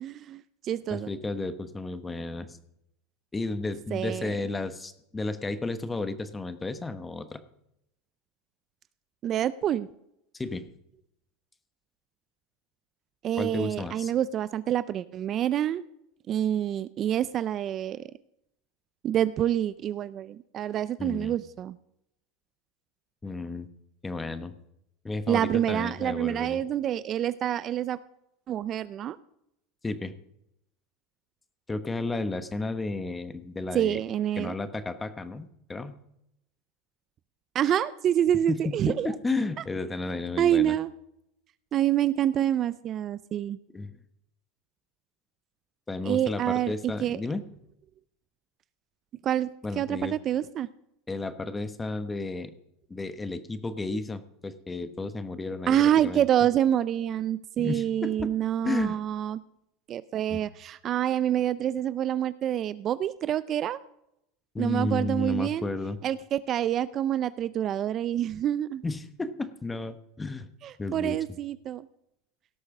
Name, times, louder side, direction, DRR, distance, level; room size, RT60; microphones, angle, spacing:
voice 1, 0.0-1.1 3.9-4.4 9.2-9.9 13.2-15.8 16.3-18.0 19.0-21.8 25.3-28.0 28.5-29.2 33.7-34.5 37.5-39.1 40.4-40.9 41.7-43.6 46.0-47.2 49.2-49.5 49.8-50.7 55.7-59.4 59.9-63.8 64.6-65.7 66.0-68.8 70.6-71.9, right 11 dB, 40° right, 17 dB, 0.4 m, -27 dB
voice 2, 0.9-2.6 3.3-7.4 10.3-10.6 13.4-14.1 21.0-21.4 23.2-23.7 24.0-24.5 25.0-26.6 29.8-30.1 31.7-34.0 34.4-35.9 38.5-40.8 43.7-44.0 45.9-47.4 49.6-50.2 51.1-52.5 52.9-56.3 57.6-58.3 58.6-59.0 60.3-60.4 64.5-66.0 68.8-70.5 70.8-71.2, left 3 dB, 15° left, 12 dB, 1.1 m, -33 dB
17.5 x 6.5 x 5.9 m, 0.79 s
supercardioid pair, 115°, 0 cm